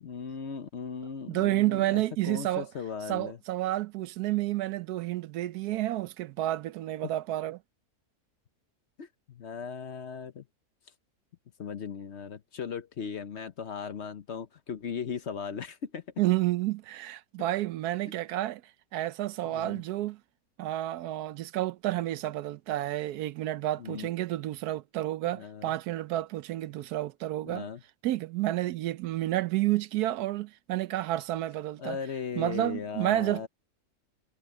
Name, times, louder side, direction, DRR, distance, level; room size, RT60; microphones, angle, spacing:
voice 1, 0.0-3.4 9.0-10.4 11.6-16.0 19.5-19.8 23.8-24.1 25.3-25.7 27.4-27.8 31.8-33.5, left 6 dB, 55° left, 1.0 m, -38 dB
voice 2, 1.3-2.7 3.1-7.6 16.2-18.6 18.9-20.2 20.6-27.7 28.0-32.0 32.4-33.5, right 15 dB, 85° right, 1.2 m, -30 dB
omnidirectional pair, 1.6 m